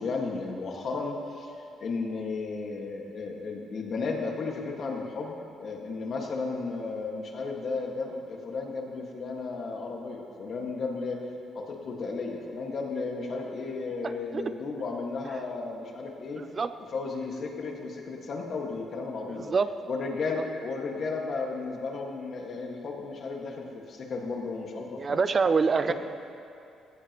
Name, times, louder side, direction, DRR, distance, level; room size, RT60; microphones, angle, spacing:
voice 1, 0.0-1.5 1.8-11.2 11.5-16.4 16.9-19.5 19.9-25.2 25.9-26.0, left 4 dB, 50° left, 1 dB, 1.7 m, -34 dB
voice 2, 14.0-14.5 16.4-16.7 19.3-19.7 25.0-25.9, right 5 dB, 30° right, 12 dB, 0.3 m, -26 dB
17.0 x 15.0 x 3.0 m, 2.7 s
cardioid pair, 130°, 0 cm